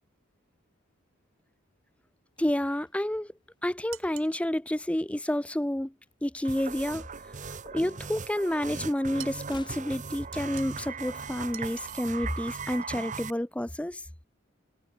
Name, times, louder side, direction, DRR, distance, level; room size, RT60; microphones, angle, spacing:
sound 1, 2.3-4.6 4.9-5.2 5.5-7.0 7.2-8.6 8.8-11.0 11.2-11.3, left 2 dB, 20° left, 5.5 m, -56 dB
voice 1, 2.4-3.3 3.6-5.9 6.2-7.1 7.7-14.0, left 1 dB, 5° left, 0.5 m, -29 dB
sound 2, 3.9-4.4 9.2-9.5 10.3-10.9 11.5-12.0, right 14 dB, 70° right, 1.2 m, -45 dB
sound 3, 6.4-13.3, right 5 dB, 35° right, 0.9 m, -39 dB
head